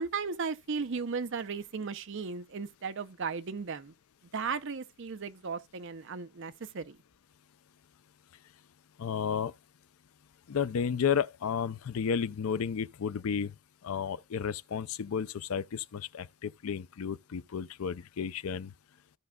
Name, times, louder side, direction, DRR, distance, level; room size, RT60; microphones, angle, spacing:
voice 1, 0.0-3.9 4.3-7.0, right 5 dB, 55° right, 0.6 m, -36 dB
voice 2, 9.0-9.5 10.5-13.5 13.8-18.7, left 7 dB, 75° left, 0.4 m, -32 dB
15.5 x 5.2 x 2.3 m
head